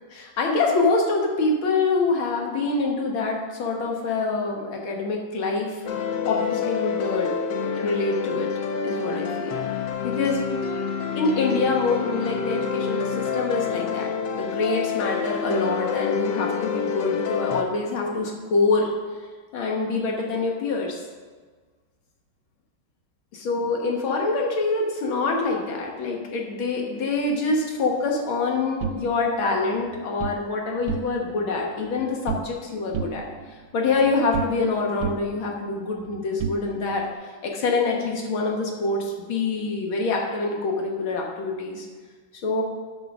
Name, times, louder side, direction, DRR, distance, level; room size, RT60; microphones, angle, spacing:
voice 1, 0.1-5.8 6.2-7.3 7.6-8.5 8.8-9.6 10.0-10.4 11.2-18.9 19.5-21.0 23.3-33.3 33.7-37.0 37.4-41.9 42.4-42.6, left 3 dB, 90° left, 0 dB, 2.1 m, -25 dB
sound 1, 5.8-17.6, left 6 dB, 70° left, 1.3 m, -28 dB
sound 2, 28.8-30.4 30.8-31.4 31.7-32.6 32.9-34.7 35.0-37.1, right 7 dB, 85° right, 1.4 m, -33 dB
10.5 x 4.0 x 5.9 m, 1.4 s
omnidirectional pair, 2.2 m